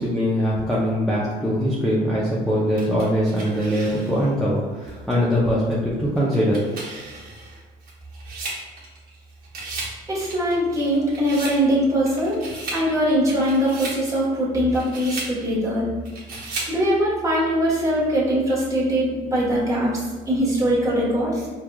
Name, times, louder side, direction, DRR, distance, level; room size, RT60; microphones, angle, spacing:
voice 1, 0.0-6.6, equal, ahead, -8 dB, 0.6 m, -22 dB
sound 1, 2.8-4.3 4.9-5.0 6.2-9.2 9.4-10.0 10.3-11.6 12.1-12.9 13.3-14.0 14.5-15.4 16.1-16.8, right 2 dB, 60° right, 1.0 m, -35 dB
voice 2, 10.1-12.4 12.7-15.8 16.7-21.5, equal, 20° right, -6 dB, 1.2 m, -22 dB
4.6 x 2.4 x 2.3 m, 1.4 s
cardioid pair, 110°, 17 cm